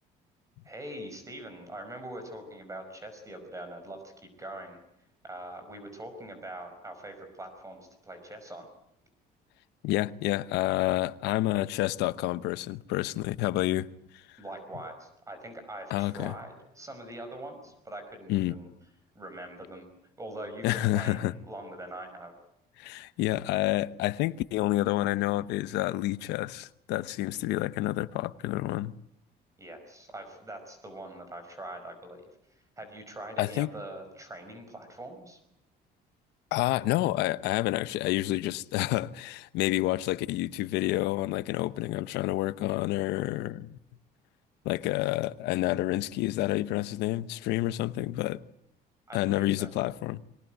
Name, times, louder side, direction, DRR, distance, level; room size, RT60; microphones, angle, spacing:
voice 1, 0.6-4.8 5.2-8.7 14.4-18.7 19.2-19.9 20.2-22.3 29.6-32.2 32.8-35.4 49.1-49.7, right 1 dB, 20° right, 5.3 m, -43 dB
voice 2, 9.8-14.4 15.9-16.3 18.3-18.6 20.6-21.3 22.8-28.9 33.4-33.7 36.5-43.7 44.6-48.4 49.1-50.2, left 16 dB, 90° left, 0.9 m, -29 dB
22.5 x 19.0 x 9.2 m
cardioid pair, 110°, 17 cm